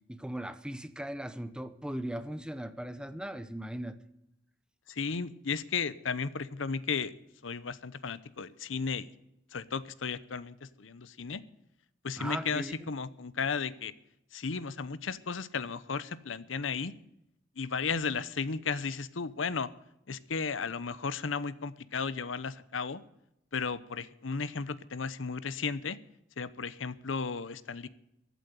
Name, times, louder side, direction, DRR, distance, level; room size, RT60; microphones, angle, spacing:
voice 1, 0.1-4.0 12.2-12.9, right 1 dB, 5° right, 0.8 m, -38 dB
voice 2, 4.9-7.1 7.4-9.1 9.5-11.4 12.0-13.9 14.3-16.9 17.6-19.7 20.1-23.0 23.5-26.0 26.4-27.9, left 5 dB, 75° left, 0.8 m, -34 dB
15.0 x 9.2 x 9.2 m
head